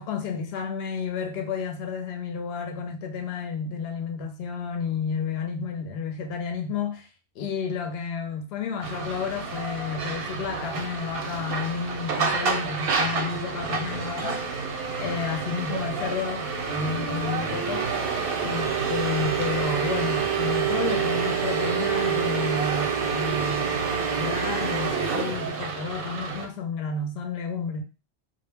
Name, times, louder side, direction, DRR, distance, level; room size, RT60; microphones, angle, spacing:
voice 1, 0.0-7.1 7.4-14.5 15.0-18.0 18.4-27.8, left 5 dB, 65° left, 0.8 m, -31 dB
sound 1, 8.8-26.5, right 5 dB, 65° right, 0.7 m, -28 dB
2.1 x 2.0 x 3.2 m
omnidirectional pair, 1.2 m